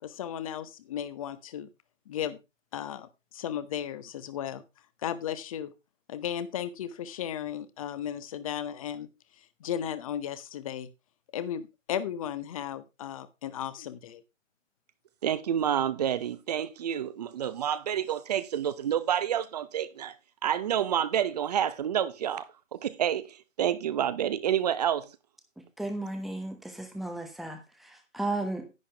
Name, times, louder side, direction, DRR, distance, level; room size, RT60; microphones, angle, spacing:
voice 1, 0.0-1.7 2.1-2.4 2.7-4.6 5.0-5.7 6.1-9.1 9.6-10.9 11.3-14.2, left 9 dB, 25° left, 1.0 m, -35 dB
voice 2, 15.2-20.1 20.4-25.1, right 10 dB, 30° right, 0.9 m, -29 dB
voice 3, 25.6-28.7, right 2 dB, ahead, 0.9 m, -35 dB
10.5 x 10.0 x 3.4 m
figure-of-eight pair, 140°, 38 cm